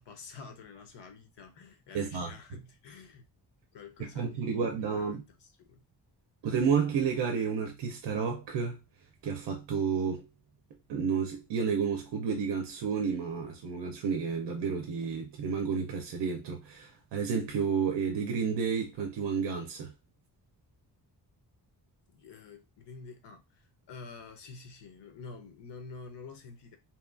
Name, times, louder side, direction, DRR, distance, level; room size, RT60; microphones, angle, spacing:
voice 1, 0.0-3.3 3.7-5.8 22.1-26.8, left 4 dB, 90° left, 0.8 m, -48 dB
voice 2, 1.9-2.3 4.0-5.2 6.4-8.8 9.2-10.3 10.9-19.9, right 6 dB, 85° right, 0.5 m, -31 dB
2.8 x 2.3 x 2.4 m
wide cardioid pair, 165°, 41 cm